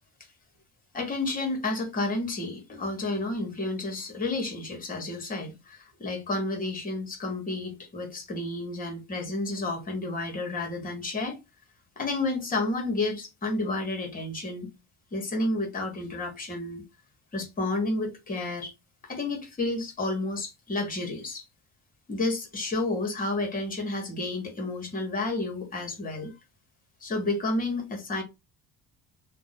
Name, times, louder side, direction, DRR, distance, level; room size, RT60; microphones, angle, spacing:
voice 1, 0.9-11.4 12.0-14.7 15.1-16.8 17.3-18.7 19.1-21.4 22.1-26.3 27.0-28.2, left 2 dB, 25° left, 1.0 m, -31 dB
2.5 x 2.1 x 3.9 m
cardioid pair, 160°, 34 cm